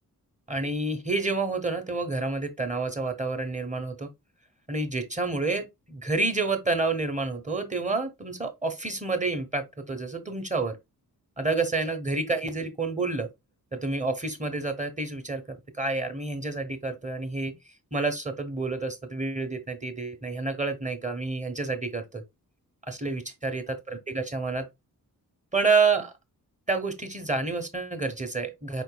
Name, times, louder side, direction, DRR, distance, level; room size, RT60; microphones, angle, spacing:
voice 1, 0.5-4.1 4.7-10.8 11.4-13.3 13.7-15.4 15.8-17.5 17.9-22.2 22.9-24.7 25.5-26.1 26.7-28.8, right 3 dB, 20° right, 0.8 m, -29 dB
4.5 x 3.9 x 2.2 m
cardioid pair, 65°, 37 cm